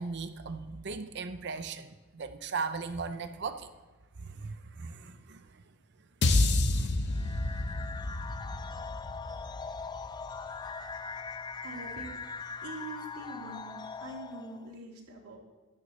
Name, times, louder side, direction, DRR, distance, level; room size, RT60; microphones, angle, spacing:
voice 1, 0.0-3.7 4.2-5.5 6.7-6.9, right 4 dB, 50° right, 10 dB, 0.6 m, -38 dB
sound 1, 6.2-10.6, left 2 dB, 50° left, 0.7 m, -29 dB
sound 2, 7.1-14.7, left 5 dB, 20° left, 0.3 m, -41 dB
voice 2, 11.6-12.1 12.6-15.4, right 2 dB, 90° right, -3 dB, 3.1 m, -44 dB
16.0 x 11.5 x 3.2 m, 1.3 s
head